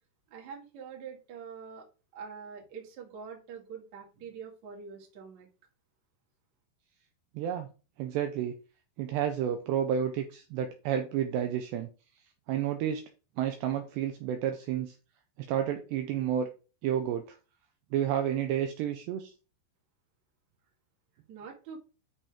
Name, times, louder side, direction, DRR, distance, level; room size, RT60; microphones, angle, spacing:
voice 1, 0.3-1.9 2.1-5.5 21.3-21.8, right 6 dB, 45° right, -1 dB, 2.8 m, -45 dB
voice 2, 7.4-7.7 8.0-8.5 9.0-11.9 12.5-13.0 13.4-14.9 15.5-16.5 16.8-17.4 17.9-19.3, right 9 dB, 85° right, 6 dB, 2.4 m, -30 dB
10.0 x 5.3 x 3.6 m, 0.33 s
omnidirectional pair, 5.7 m